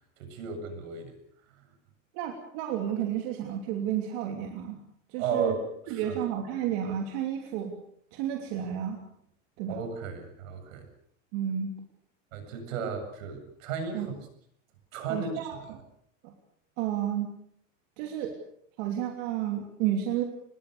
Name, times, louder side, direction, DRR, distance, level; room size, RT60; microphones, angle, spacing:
voice 1, 0.2-1.2 5.2-5.6 5.9-6.2 9.7-10.9 12.3-14.1 14.9-15.5, right 5 dB, 75° right, 8 dB, 7.6 m, -34 dB
voice 2, 2.1-4.8 5.1-5.5 5.9-7.8 8.1-9.0 9.6-9.8 11.3-11.7 12.8-12.9 13.9-14.1 15.1-15.6 16.2-16.3 16.8-17.3 18.0-18.3 18.8-20.2, right 10 dB, 50° right, 3 dB, 3.1 m, -31 dB
26.0 x 21.0 x 6.7 m, 0.68 s
supercardioid pair, 170°, 40 cm